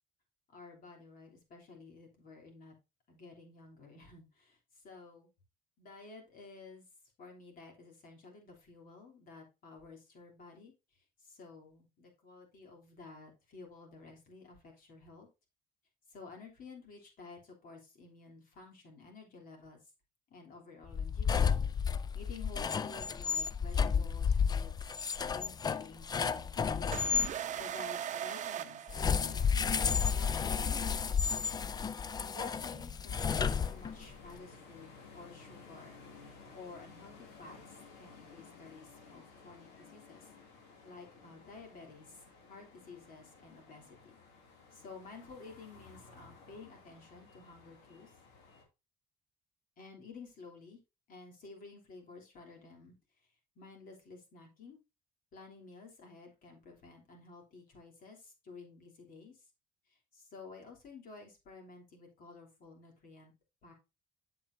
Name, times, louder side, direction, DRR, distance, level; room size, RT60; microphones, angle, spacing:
voice 1, 0.5-2.7 3.1-5.3 5.8-6.9 7.2-15.3 16.1-19.8 20.3-21.6 21.9-24.9 25.3-31.6 32.2-36.0 36.2-40.3 40.8-44.1 44.7-48.1 49.8-50.8 51.1-53.0 53.5-54.8 55.3-59.5 59.9-63.3 63.6-63.7, left 4 dB, 55° left, 1 dB, 3.1 m, -52 dB
sound 1, 20.9-27.3 28.9-34.1, left 6 dB, 25° left, 0.4 m, -32 dB
sound 2, 26.9-29.7, right 10 dB, 45° right, 0.7 m, -39 dB
sound 3, 33.1-48.6, left 4 dB, 85° left, 2.7 m, -56 dB
7.7 x 7.5 x 2.7 m, 0.26 s
cardioid pair, 110°, 17 cm